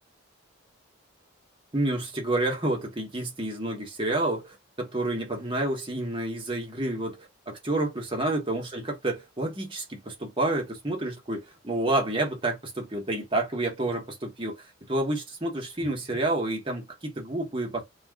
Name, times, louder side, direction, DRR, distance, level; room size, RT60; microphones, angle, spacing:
voice 1, 1.7-14.5 14.9-17.8, right 2 dB, 25° right, 1.0 m, -29 dB
2.3 x 2.3 x 3.4 m
head